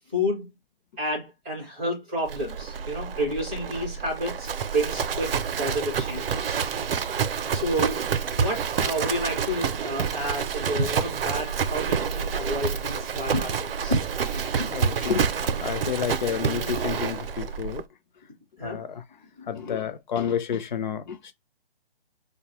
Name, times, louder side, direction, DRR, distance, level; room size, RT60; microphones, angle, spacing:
voice 1, 0.1-0.5 1.0-6.6 7.5-8.0 8.4-14.0 14.3-14.7 18.6-18.8 19.4-19.8, equal, 5° right, 0.4 m, -30 dB
Livestock farm animals working animals, 2.3-17.8, right 6 dB, 65° right, 0.5 m, -28 dB
voice 2, 14.6-17.8 18.6-19.0 19.5-21.3, left 8 dB, 50° left, 0.6 m, -30 dB
4.7 x 2.2 x 2.9 m
hypercardioid pair, 155°, 31 cm